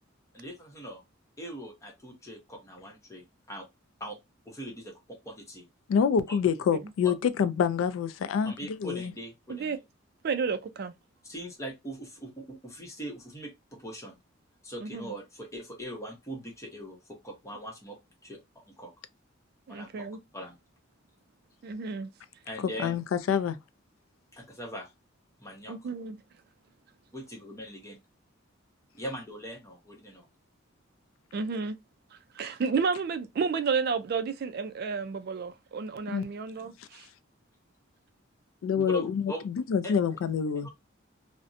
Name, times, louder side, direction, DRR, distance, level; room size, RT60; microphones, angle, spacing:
voice 1, 0.3-1.0 1.4-3.7 4.0-4.2 4.5-5.7 6.3-6.4 7.0-7.1 8.4-9.8 11.2-14.2 14.6-18.9 19.7-20.1 20.3-20.6 22.4-23.0 24.3-24.9 25.4-25.8 27.1-28.0 28.9-30.3 38.7-39.4 39.8-39.9 40.6-40.7, right 1 dB, 15° left, 0.8 m, -41 dB
voice 2, 5.9-8.5 8.8-9.1 22.8-23.6 36.1-36.3 38.6-40.7, left 7 dB, 80° left, 0.3 m, -27 dB
voice 3, 10.2-10.9 14.8-15.1 19.7-20.2 21.6-22.1 25.7-26.2 31.3-31.8 32.3-37.1, right 5 dB, 50° right, 0.3 m, -31 dB
2.5 x 2.1 x 2.5 m
head